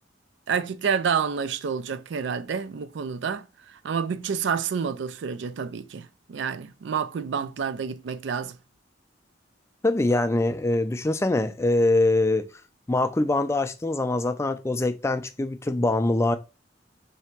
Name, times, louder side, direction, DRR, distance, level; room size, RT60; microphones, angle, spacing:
voice 1, 0.5-8.6, right 6 dB, 75° right, 0.4 m, -29 dB
voice 2, 9.8-12.5 12.9-16.4, left 2 dB, 15° left, 0.3 m, -23 dB
3.3 x 2.8 x 4.4 m
head